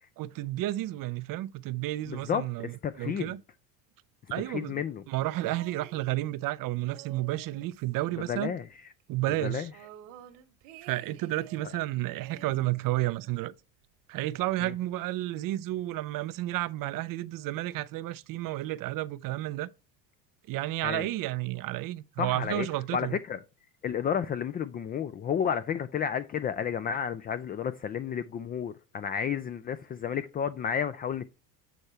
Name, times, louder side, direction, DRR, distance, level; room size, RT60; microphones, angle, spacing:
voice 1, 0.2-3.4 4.3-4.8 5.1-8.5 9.1-9.7 10.8-13.5 14.1-19.7 20.5-23.2, right 16 dB, 45° right, 0.5 m, -31 dB
voice 2, 2.1-3.4 4.5-5.0 8.3-8.7 9.4-9.7 14.6-14.7 20.8-21.1 22.2-22.7 22.9-23.4 23.8-31.3, left 8 dB, 20° left, 0.3 m, -31 dB
sound 1, 5.2-6.5 6.8-8.7 9.0-9.1 9.4-11.8 12.2-13.5 14.3-14.4, right 11 dB, 65° right, 1.3 m, -52 dB
8.1 x 4.4 x 3.1 m
hypercardioid pair, 75°, 50 cm